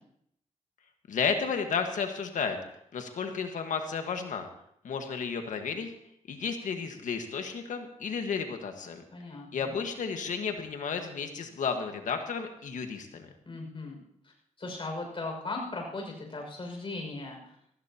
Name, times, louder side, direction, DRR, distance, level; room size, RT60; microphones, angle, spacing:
voice 1, 1.1-2.6 2.9-4.5 4.8-5.9 6.3-9.0 9.5-13.3, left 6 dB, 75° left, 5 dB, 1.6 m, -32 dB
voice 2, 9.1-9.8 13.4-17.6, left 2 dB, 40° left, 1 dB, 6.0 m, -38 dB
18.5 x 15.5 x 2.9 m, 0.71 s
cardioid pair, 75°, 13 cm